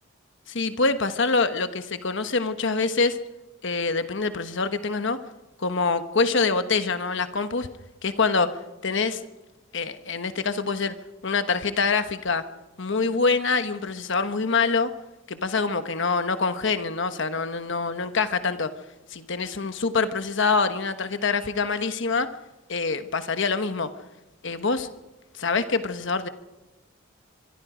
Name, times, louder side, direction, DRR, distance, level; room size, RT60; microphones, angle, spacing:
voice 1, 0.5-3.2 3.6-5.2 5.6-7.7 8.0-8.5 8.8-9.2 9.7-10.9 11.2-12.4 12.8-14.9 15.3-18.7 19.1-22.3 22.7-23.9 24.4-24.9 25.4-26.3, left 4 dB, 65° left, 9 dB, 1.2 m, -25 dB
24.5 x 24.0 x 5.0 m, 1.1 s
head